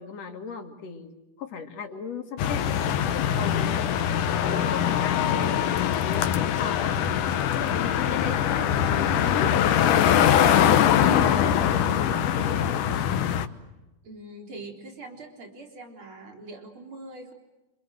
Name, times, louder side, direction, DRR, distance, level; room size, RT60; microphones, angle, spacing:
voice 1, 0.0-3.9 4.3-5.6 6.0-7.0 7.5-12.8, left 6 dB, 55° left, 5 dB, 3.3 m, -35 dB
sound 1, 2.4-13.5, left 9 dB, 90° left, 2.7 m, -23 dB
voice 2, 14.0-17.3, right 2 dB, 40° right, 3 dB, 4.7 m, -43 dB
28.0 x 26.0 x 7.8 m, 1.0 s
omnidirectional pair, 3.5 m